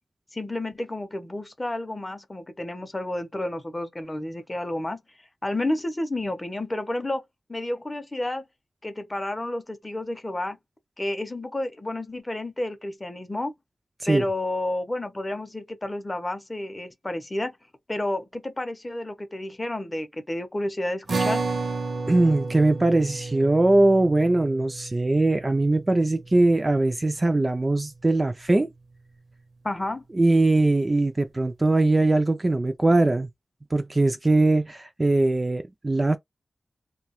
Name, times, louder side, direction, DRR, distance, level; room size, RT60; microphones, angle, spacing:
voice 1, 0.3-5.0 5.4-7.2 7.5-8.4 8.8-10.6 11.0-13.5 14.1-17.5 17.9-21.4 29.6-30.0, left 1 dB, 20° left, 0.6 m, -30 dB
sound 1, 21.1-27.7, right 3 dB, 65° right, 0.7 m, -32 dB
voice 2, 22.1-28.7 30.1-33.3 33.7-36.2, right 2 dB, 25° right, 0.3 m, -21 dB
2.7 x 2.2 x 2.9 m
wide cardioid pair, 150°, 0 cm